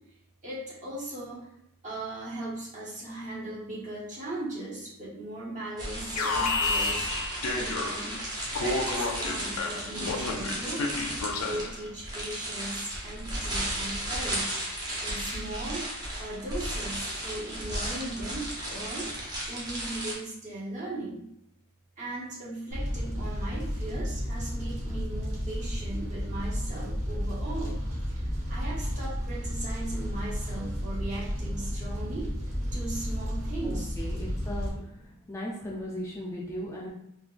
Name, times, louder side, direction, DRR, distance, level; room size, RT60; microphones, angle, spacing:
voice 1, 0.4-1.5 1.8-8.2 8.6-10.9 11.4-15.9 16.2-19.1 19.5-21.3 22.0-27.8 28.1-28.2 28.5-32.3 32.7-34.0 34.7-35.2, right 1 dB, 35° right, -6 dB, 1.0 m, -38 dB
sound 1, 5.8-20.1, right 1 dB, 20° right, 0.7 m, -35 dB
Alarm, 6.2-8.2 8.5-11.8, left 3 dB, 75° left, 0.4 m, -31 dB
Fire, 22.7-34.7, equal, 70° right, 1.1 m, -32 dB
voice 2, 33.6-34.7 35.3-36.9, left 1 dB, 15° left, -3 dB, 0.4 m, -37 dB
3.7 x 2.2 x 2.5 m, 0.76 s
head